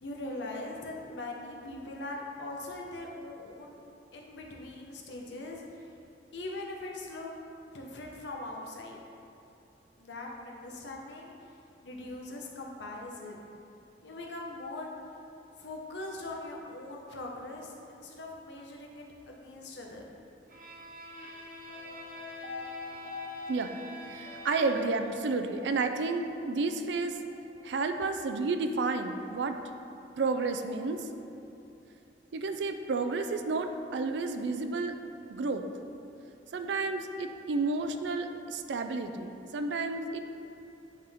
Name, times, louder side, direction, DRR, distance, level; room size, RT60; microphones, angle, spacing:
voice 1, 0.0-3.8 4.1-5.9 6.3-7.3 7.7-9.0 10.0-11.3 11.8-13.5 14.0-14.9 15.6-20.1, left 2 dB, 70° left, -1 dB, 0.8 m, -41 dB
Bowed string instrument, 20.5-25.2, equal, 50° right, 0.8 m, -46 dB
sound 1, 21.7-28.0 28.3-28.4, left 4 dB, 40° left, 0.8 m, -46 dB
voice 2, 24.1-27.2 27.6-29.6 30.2-31.1 32.3-34.9 35.3-35.6 36.5-40.2, right 3 dB, 70° right, 7 dB, 0.4 m, -31 dB
9.1 x 3.7 x 3.5 m, 2.7 s
head